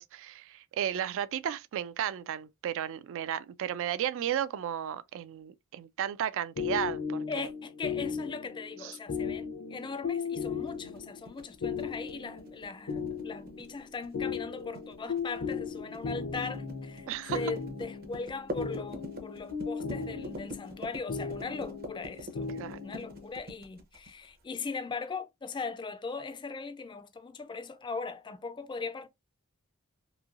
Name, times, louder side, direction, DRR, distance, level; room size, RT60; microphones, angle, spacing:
voice 1, 0.0-7.5 8.8-9.0 17.1-17.4 22.6-22.8, right 10 dB, 65° right, 0.3 m, -34 dB
sound 1, 6.6-23.3, left 5 dB, 65° left, 0.7 m, -37 dB
voice 2, 7.3-22.5 22.8-29.1, left 4 dB, 20° left, 0.4 m, -39 dB
sound 2, 10.7-24.4, equal, 45° right, 0.7 m, -45 dB
3.0 x 2.6 x 2.4 m
head